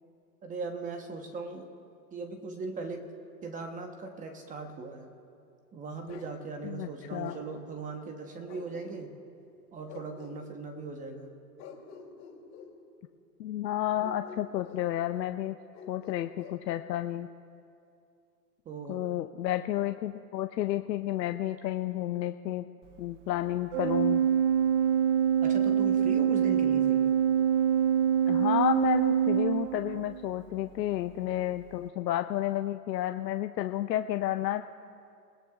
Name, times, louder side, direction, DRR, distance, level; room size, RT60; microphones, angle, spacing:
voice 1, 0.4-1.7 2.1-3.1 3.4-5.1 5.7-9.1 9.7-11.3 18.6-19.1 25.4-27.1, right 3 dB, 15° right, 5 dB, 1.0 m, -39 dB
Bark, 6.1-6.3 7.2-7.4 8.5-9.2 9.9-10.4 11.6-12.7 14.0-14.9 15.7-16.6, left 6 dB, 30° left, 2.9 m, -47 dB
voice 2, 6.6-7.4 13.4-15.6 15.9-17.3 18.9-22.6 23.0-24.3 28.3-34.6, left 13 dB, 80° left, 8 dB, 0.7 m, -31 dB
Organ, 23.7-30.3, right 9 dB, 50° right, 0.6 m, -25 dB
26.5 x 17.5 x 2.4 m, 2.4 s
hypercardioid pair, 135°, 50 cm